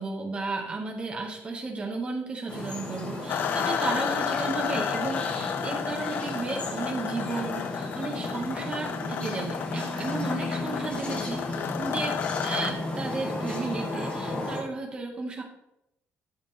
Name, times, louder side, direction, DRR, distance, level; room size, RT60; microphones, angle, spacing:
voice 1, 0.0-15.4, right 3 dB, 25° right, 1 dB, 1.9 m, -34 dB
sound 1, 2.5-14.6, left 2 dB, 30° left, 2.4 m, -34 dB
sound 2, 3.3-12.7, left 8 dB, 50° left, 0.4 m, -32 dB
12.5 x 7.5 x 3.5 m, 0.83 s
cardioid pair, 165°, 4 cm